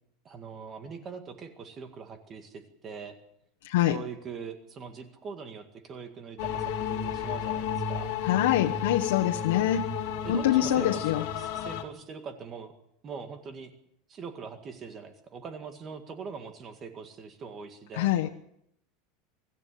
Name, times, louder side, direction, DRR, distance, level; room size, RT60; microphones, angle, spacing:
voice 1, 0.2-3.2 3.9-8.1 10.2-12.7 13.0-13.7 14.1-18.3, right 5 dB, 25° right, 7 dB, 2.0 m, -42 dB
voice 2, 3.6-4.0 8.2-9.9 10.3-11.2 18.0-18.3, left 12 dB, 85° left, 2 dB, 1.3 m, -25 dB
sound 1, 6.4-11.8, left 8 dB, 55° left, 3.2 m, -32 dB
25.0 x 15.0 x 8.4 m, 0.76 s
supercardioid pair, 170°, 0 cm